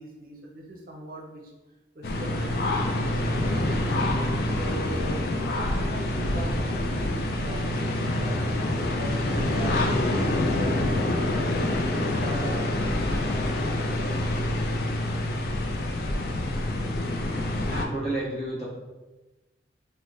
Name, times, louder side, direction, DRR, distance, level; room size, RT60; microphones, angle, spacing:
voice 1, 0.0-1.4 1.9-3.0 3.4-4.0 4.5-5.2 5.5-9.9 10.6-14.2, right 1 dB, 50° right, 0 dB, 0.6 m, -40 dB
sound 1, 2.0-17.8, left 1 dB, 55° left, 0.4 m, -26 dB
voice 2, 17.5-18.6, right 2 dB, 35° left, -8 dB, 1.1 m, -31 dB
3.2 x 2.0 x 3.8 m, 1.1 s
head